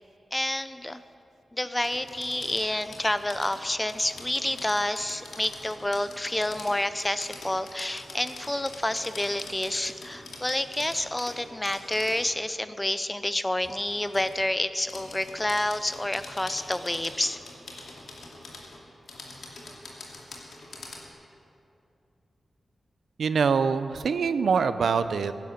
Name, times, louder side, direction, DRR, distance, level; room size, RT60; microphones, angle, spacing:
voice 1, 0.3-1.0 1.5-17.4, left 1 dB, 10° left, 12 dB, 0.5 m, -29 dB
sound 1, 1.8-12.3 13.6-14.4 14.9-21.1, left 2 dB, 90° left, 2.5 m, -44 dB
voice 2, 23.2-25.3, right 5 dB, 80° right, 12 dB, 0.6 m, -24 dB
16.5 x 10.5 x 6.6 m, 2.7 s
wide cardioid pair, 145°, 0 cm